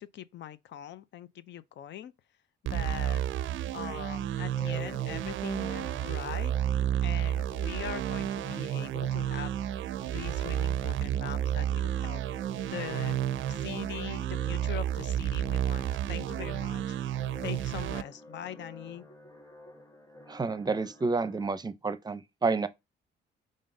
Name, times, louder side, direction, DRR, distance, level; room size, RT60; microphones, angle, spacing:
voice 1, 0.0-2.1 2.6-3.2 3.7-6.5 7.0-9.7 10.0-12.2 12.7-13.2 13.5-17.0 17.4-19.1, left 10 dB, 65° left, 0.6 m, -42 dB
sound 1, 2.7-18.0, right 11 dB, 75° right, 0.5 m, -31 dB
sound 2, 4.3-21.5, left 1 dB, 15° left, 1.5 m, -50 dB
voice 2, 20.3-22.7, right 4 dB, 20° right, 0.6 m, -30 dB
5.3 x 3.7 x 2.7 m
cardioid pair, 90°, 20 cm